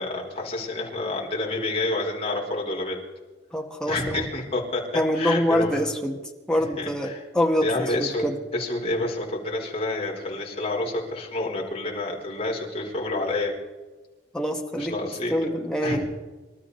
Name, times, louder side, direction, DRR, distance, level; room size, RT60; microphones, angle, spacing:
voice 1, 0.0-3.0 3.9-4.8 5.1-5.9 6.6-7.2 7.6-8.3 8.5-13.5 14.8-15.5 15.8-16.1, left 2 dB, 30° left, -2 dB, 4.5 m, -29 dB
voice 2, 3.5-4.3 4.9-6.2 6.5-8.3 14.3-14.9 15.3-16.0, equal, 5° left, 1 dB, 1.9 m, -25 dB
27.0 x 13.0 x 4.2 m, 1.2 s
head